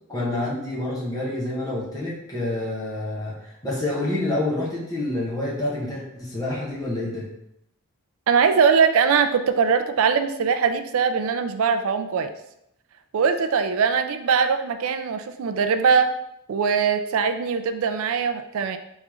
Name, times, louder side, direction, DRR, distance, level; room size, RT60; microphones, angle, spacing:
voice 1, 0.1-3.3 3.6-7.3, left 1 dB, 15° left, -5 dB, 1.1 m, -28 dB
voice 2, 8.3-12.3 13.1-16.1 16.5-18.8, right 6 dB, 65° right, 8 dB, 0.4 m, -21 dB
3.7 x 3.1 x 3.6 m, 0.80 s
head